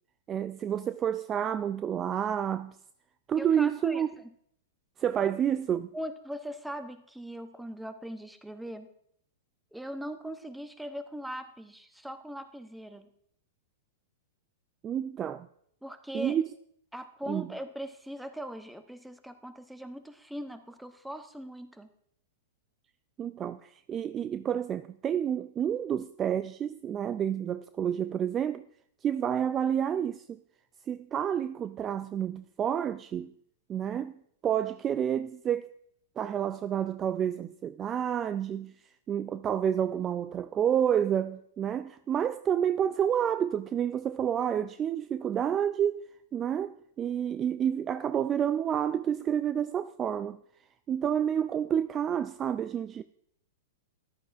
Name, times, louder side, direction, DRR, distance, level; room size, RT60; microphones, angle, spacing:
voice 1, 0.3-2.8 3.3-4.1 5.0-5.9 14.8-15.5 16.1-16.4 17.3-17.5 23.2-28.6 29.0-30.4 30.9-33.3 33.7-34.1 34.4-35.7 36.2-38.7 39.1-46.0 46.3-50.4 50.9-53.0, right 9 dB, 25° right, 0.3 m, -29 dB
voice 2, 3.4-4.3 5.9-8.9 9.7-13.1 15.8-16.4 16.9-21.9, right 1 dB, 5° right, 0.8 m, -40 dB
14.5 x 11.5 x 2.6 m
hypercardioid pair, 110°, 0 cm